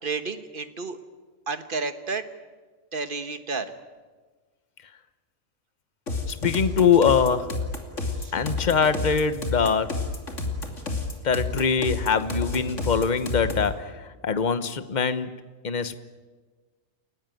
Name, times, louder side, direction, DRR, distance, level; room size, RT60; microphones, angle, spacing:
voice 1, 0.0-1.0 1.5-2.3 2.9-3.7 8.2-8.3, right 4 dB, 40° right, 9 dB, 1.5 m, -31 dB
sound 1, 6.1-13.7, left 3 dB, 65° left, 3.2 m, -30 dB
voice 2, 6.3-7.6 8.3-10.0 11.2-15.3 15.6-16.0, left 6 dB, 35° left, 12 dB, 1.1 m, -23 dB
30.0 x 18.0 x 9.2 m, 1.4 s
omnidirectional pair, 1.4 m